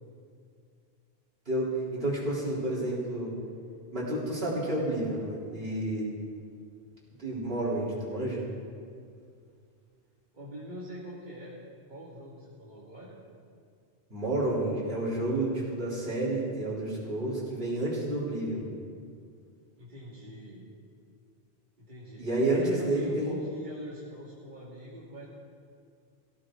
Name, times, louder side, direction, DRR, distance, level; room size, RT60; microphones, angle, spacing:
voice 1, 1.5-3.3 3.9-6.1 7.2-8.4 14.1-18.6 22.2-23.3, right 1 dB, 60° right, -6 dB, 4.0 m, -30 dB
voice 2, 10.3-11.6 11.9-13.2 19.8-20.7 21.8-25.3, equal, 45° right, -7 dB, 2.4 m, -44 dB
19.0 x 16.0 x 3.9 m, 2.3 s
omnidirectional pair, 1.1 m